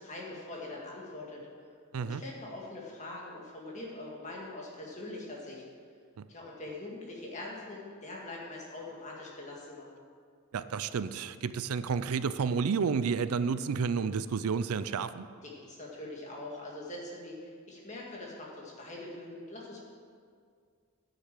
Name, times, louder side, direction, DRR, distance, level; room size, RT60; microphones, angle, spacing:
voice 1, 0.0-1.4 2.0-5.6 6.3-9.9 15.4-19.8, left 2 dB, 30° left, -3 dB, 2.0 m, -43 dB
voice 2, 10.5-15.3, right 5 dB, 85° right, 13 dB, 0.4 m, -31 dB
9.5 x 6.7 x 7.6 m, 2.1 s
head